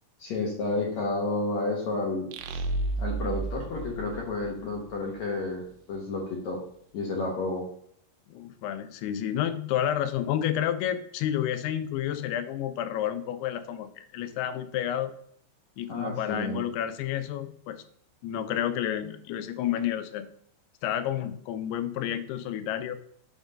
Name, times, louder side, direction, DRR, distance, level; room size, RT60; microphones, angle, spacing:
voice 1, 0.2-2.7 3.0-5.6 5.9-6.6 6.9-7.6 15.9-16.6, left 2 dB, 65° left, -2 dB, 1.8 m, -31 dB
sound 1, 2.3-5.0, right 3 dB, 80° right, 2.4 m, -32 dB
voice 2, 8.3-15.1 15.8-17.8 18.2-20.3 20.8-23.0, left 10 dB, 90° left, 10 dB, 2.6 m, -30 dB
6.2 x 3.6 x 5.2 m, 0.67 s
omnidirectional pair, 4.6 m